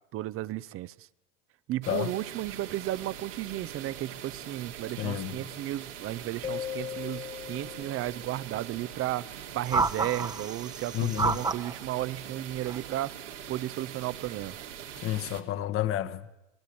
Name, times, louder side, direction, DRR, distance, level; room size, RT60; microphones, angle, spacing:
voice 1, 0.1-0.9 1.7-9.3 9.5-13.1 13.5-14.6, right 14 dB, 40° right, 0.8 m, -34 dB
sound 1, 1.8-15.4, right 9 dB, 80° right, 3.2 m, -43 dB
voice 2, 5.0-5.4 10.9-11.4 15.0-16.4, left 12 dB, 40° left, 1.3 m, -30 dB
sound 2, 6.4-8.7, left 10 dB, 20° left, 0.8 m, -39 dB
sound 3, 9.7-11.7 12.7-12.9, right 4 dB, 10° right, 1.0 m, -30 dB
27.0 x 20.0 x 8.6 m
hypercardioid pair, 90°, 36 cm